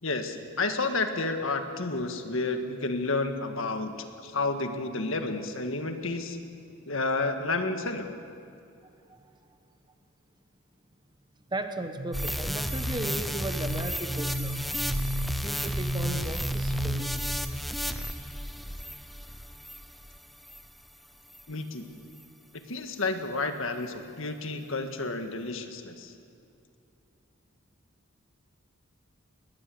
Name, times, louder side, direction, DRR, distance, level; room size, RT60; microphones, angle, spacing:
voice 1, 0.0-4.0 4.2-6.4 6.9-8.1 21.5-21.8 22.7-26.1, left 3 dB, 65° left, 6 dB, 1.8 m, -30 dB
voice 2, 11.5-14.5 15.4-17.7, right 1 dB, 20° right, 7 dB, 1.2 m, -36 dB
sound 1, 12.0-17.1, right 1 dB, 40° right, 1.6 m, -34 dB
sound 2, 12.1-20.8 21.3-21.4, equal, ahead, 0.6 m, -33 dB
20.5 x 20.0 x 7.8 m, 2.6 s
head